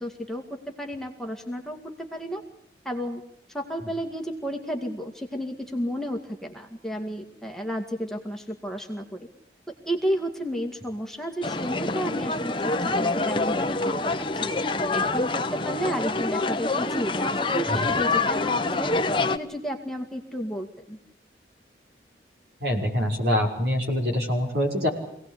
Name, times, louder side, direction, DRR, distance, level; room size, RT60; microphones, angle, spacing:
voice 1, 0.0-2.4 2.8-3.2 3.5-9.3 9.7-12.5 12.8-13.8 14.2-14.6 14.9-18.9 19.3-21.0, equal, 5° left, 2 dB, 2.1 m, -32 dB
sound 1, 11.4-19.4, left 3 dB, 30° left, 1.1 m, -26 dB
voice 2, 22.6-24.9, equal, 65° right, 2 dB, 6.0 m, -24 dB
26.0 x 18.5 x 8.5 m, 0.76 s
head